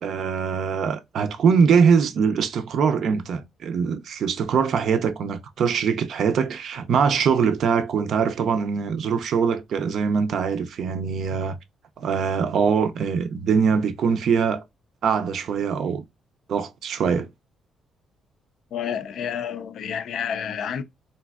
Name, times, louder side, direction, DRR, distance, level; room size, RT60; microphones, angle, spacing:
voice 1, 0.0-11.6 12.0-14.6 15.0-16.1 16.5-17.3, right 6 dB, 55° right, 0.4 m, -22 dB
voice 2, 18.7-20.8, left 8 dB, 60° left, 0.3 m, -29 dB
3.2 x 2.6 x 2.3 m
cardioid pair, 175°, 0 cm